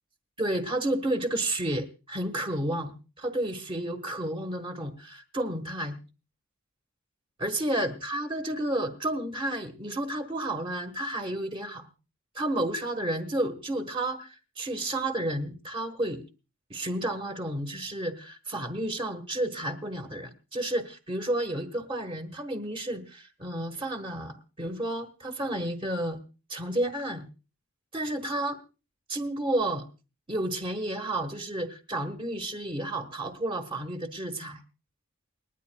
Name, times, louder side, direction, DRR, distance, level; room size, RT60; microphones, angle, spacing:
voice 1, 0.4-6.0 7.4-11.9 12.3-16.2 16.7-26.2 26.5-27.3 27.9-28.6 29.1-29.9 30.3-34.6, right 1 dB, 25° right, 7 dB, 1.4 m, -31 dB
29.0 x 10.0 x 2.3 m, 0.33 s
head